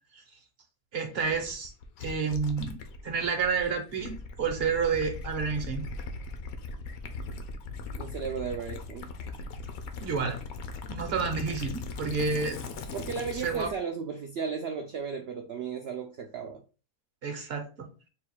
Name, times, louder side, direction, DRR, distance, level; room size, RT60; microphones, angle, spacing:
voice 1, 0.9-1.7 2.0-5.9 10.0-10.4 10.9-12.6 13.3-13.7 17.2-17.9, right 5 dB, 50° right, 0.9 m, -30 dB
Gurgling / Liquid, 1.2-13.8, left 3 dB, 70° left, 1.0 m, -39 dB
voice 2, 7.9-9.1 11.0-11.1 12.9-16.6, right 6 dB, 85° right, 0.5 m, -35 dB
3.8 x 2.3 x 4.5 m
omnidirectional pair, 1.6 m